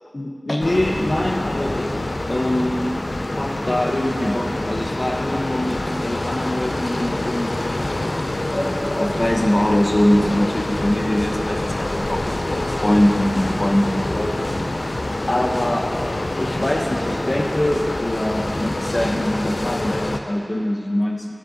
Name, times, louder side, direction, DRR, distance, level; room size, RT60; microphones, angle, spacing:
voice 1, 0.1-2.0 2.3-2.8 3.3-7.8 8.5-14.5 15.3-21.3, left 1 dB, 55° left, 1 dB, 0.9 m, -23 dB
sound 1, 0.6-20.2, left 2 dB, 70° left, 0.4 m, -26 dB
Drum kit, 2.0-19.5, equal, ahead, 0.6 m, -38 dB
10.5 x 7.4 x 3.9 m, 2.5 s
wide cardioid pair, 50°, 0 cm